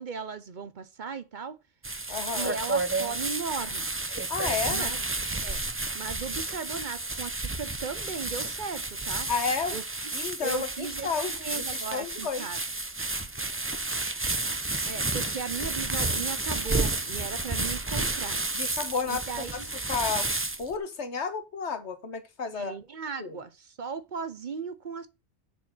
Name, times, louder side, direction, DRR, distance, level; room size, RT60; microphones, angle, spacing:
voice 1, 0.0-1.6 2.3-3.9 4.7-5.0 5.4-5.6 5.9-9.3 9.7-9.8 10.4-12.6 14.9-18.4 19.1-19.7 22.5-25.1, right 5 dB, 50° right, 0.9 m, -37 dB
sound 1, 1.8-20.8, right 2 dB, 15° right, 0.5 m, -31 dB
voice 2, 2.1-2.5 4.3-4.9 9.3-9.8 10.1-12.5 18.5-19.2 19.9-20.3 20.6-22.7 23.2-23.3, left 5 dB, 90° left, 1.6 m, -31 dB
7.1 x 4.6 x 6.0 m
omnidirectional pair, 1.1 m